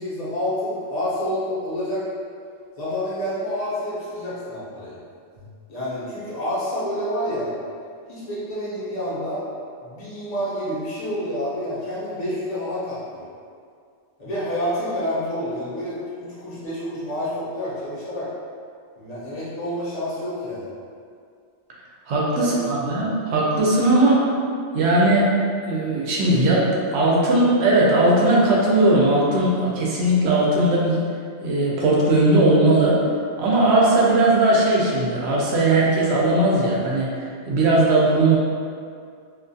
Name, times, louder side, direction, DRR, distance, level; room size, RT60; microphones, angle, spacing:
voice 1, 0.0-2.0 2.8-5.0 5.7-7.5 8.1-9.4 9.8-13.3 14.2-18.3 19.0-20.7 22.4-22.6, equal, 40° left, -9 dB, 0.8 m, -28 dB
voice 2, 22.1-24.3 24.7-25.3 25.6-31.0 31.4-33.0 33.4-37.1 37.5-38.4, right 2 dB, 70° right, -4 dB, 0.8 m, -18 dB
2.4 x 2.3 x 2.6 m, 2.2 s
omnidirectional pair, 1.2 m